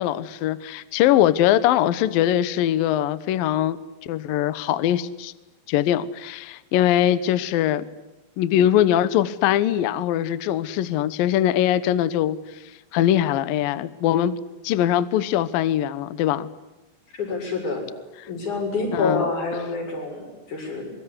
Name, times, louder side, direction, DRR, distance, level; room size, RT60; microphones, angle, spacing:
voice 1, 0.0-3.8 4.0-5.3 5.7-7.8 8.4-12.4 12.9-14.4 14.6-16.5 18.9-19.3, left 11 dB, 90° left, 16 dB, 2.0 m, -21 dB
voice 2, 17.1-17.8 18.3-20.9, left 3 dB, 35° left, 3 dB, 8.0 m, -27 dB
24.5 x 23.5 x 9.8 m, 1.0 s
omnidirectional pair, 5.9 m